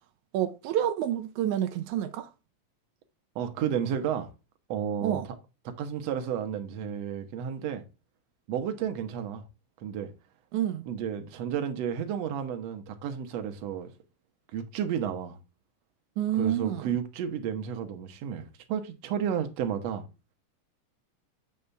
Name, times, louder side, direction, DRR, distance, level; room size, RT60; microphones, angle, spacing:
voice 1, 0.3-2.3 5.0-5.3 10.5-10.9 16.2-16.9, right 11 dB, 90° right, 2.1 m, -28 dB
voice 2, 3.4-4.3 4.7-5.2 5.7-7.8 8.5-9.4 9.8-10.1 10.9-13.9 14.5-15.4 16.3-20.1, right 8 dB, 65° right, 2.1 m, -32 dB
7.7 x 5.5 x 3.3 m
omnidirectional pair, 3.3 m